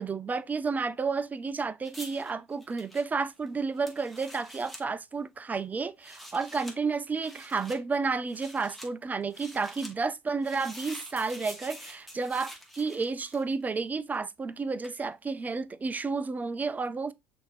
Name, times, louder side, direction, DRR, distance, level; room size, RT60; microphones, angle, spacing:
voice 1, 0.0-17.1, right 4 dB, 20° right, 0.4 m, -31 dB
sound 1, 1.8-4.8 5.9-6.8 7.2-7.8 8.3-8.9 9.3-9.9 10.4-13.6 14.8-15.0, equal, ahead, 1.5 m, -47 dB
6.2 x 2.7 x 3.1 m
hypercardioid pair, 70°, 8 cm